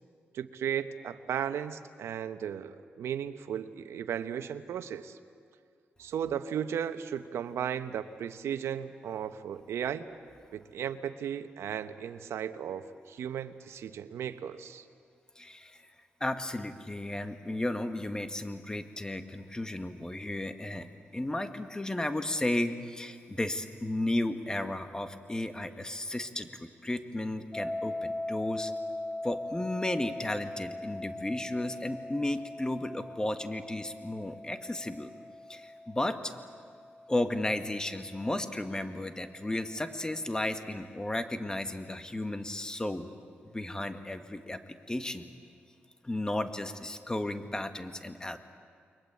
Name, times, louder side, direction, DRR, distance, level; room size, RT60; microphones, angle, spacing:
voice 1, 0.3-5.2 6.0-10.0 10.5-14.8, right 9 dB, 85° right, 10 dB, 1.1 m, -35 dB
voice 2, 15.4-15.8 16.2-28.7 29.2-35.1 35.5-36.3 37.1-43.1 43.5-45.3 46.0-48.4, left 1 dB, 15° left, 8 dB, 1.9 m, -34 dB
sound 1, 27.5-38.4, left 2 dB, 30° left, 5.0 m, -40 dB
29.5 x 22.5 x 8.5 m, 2.2 s
cardioid pair, 65°, 4 cm